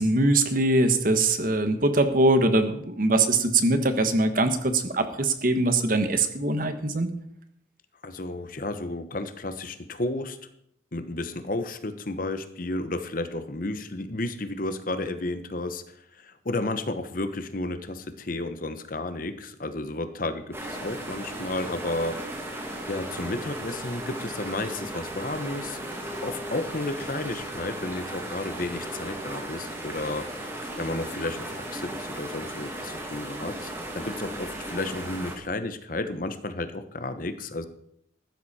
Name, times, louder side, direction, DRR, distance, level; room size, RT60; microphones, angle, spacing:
voice 1, 0.0-7.1, right 2 dB, 45° right, 9 dB, 1.3 m, -22 dB
voice 2, 8.0-10.4 10.9-15.8 16.1-22.5 22.9-25.8 26.2-37.7, left 2 dB, 45° left, 9 dB, 1.1 m, -32 dB
sound 1, 20.5-35.3, right 1 dB, 15° right, 2.5 m, -36 dB
15.0 x 12.5 x 4.3 m, 0.72 s
head